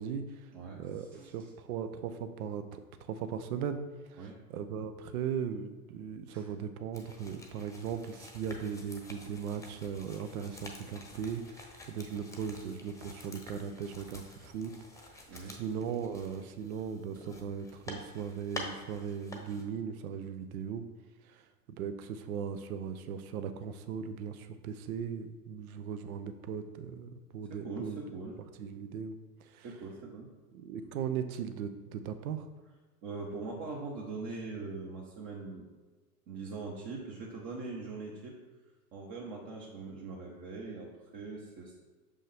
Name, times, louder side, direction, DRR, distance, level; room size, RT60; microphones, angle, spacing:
voice 1, 0.0-0.5 0.8-3.8 4.1-14.7 15.0-20.8 21.2-21.4 21.8-28.0 28.6-29.7 30.5-32.5, right 7 dB, 65° right, 10 dB, 0.8 m, -38 dB
voice 2, 0.5-1.3 4.2-4.4 6.3-6.4 15.3-15.6 27.5-28.4 29.6-30.3 33.0-35.7 36.3-38.4 38.9-41.8, right 3 dB, 40° right, -2 dB, 1.3 m, -42 dB
sound 1, 6.9-19.6, left 2 dB, 5° left, 0.9 m, -49 dB
6.4 x 5.4 x 3.5 m, 1.3 s
hypercardioid pair, 100°, 48 cm